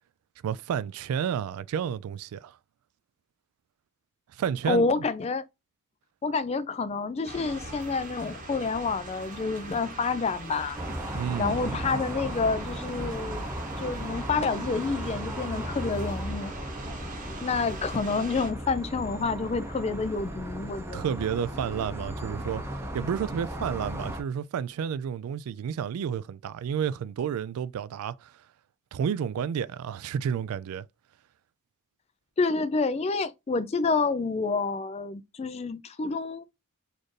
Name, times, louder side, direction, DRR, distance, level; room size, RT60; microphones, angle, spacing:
voice 1, 0.4-2.6 4.3-4.9 11.1-12.0 20.9-22.6 22.9-28.4 28.9-30.8, right 8 dB, 85° right, 0.3 m, -31 dB
voice 2, 4.7-5.4 6.2-10.8 11.4-13.5 13.8-16.5 17.4-21.1 32.4-36.4, left 4 dB, 30° left, 0.3 m, -28 dB
sound 1, 7.2-18.5, right 2 dB, 35° right, 0.9 m, -41 dB
sound 2, 10.7-24.2, equal, 10° right, 0.7 m, -36 dB
4.2 x 2.5 x 3.1 m
head